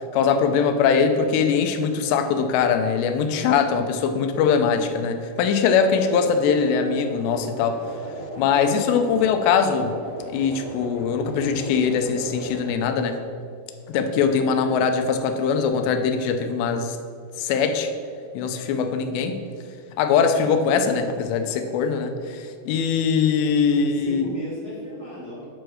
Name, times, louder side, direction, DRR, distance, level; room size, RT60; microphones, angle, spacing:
voice 1, 0.1-7.8 8.4-9.9 10.3-13.2 13.9-17.0 17.4-17.9 18.3-19.4 20.0-24.3, left 6 dB, 85° left, 7 dB, 2.9 m, -22 dB
sound 1, 5.8-12.7, equal, 35° left, 1.7 m, -37 dB
voice 2, 23.7-25.5, left 1 dB, 55° right, -9 dB, 1.0 m, -36 dB
9.4 x 4.8 x 6.3 m, 2.3 s
omnidirectional pair, 4.9 m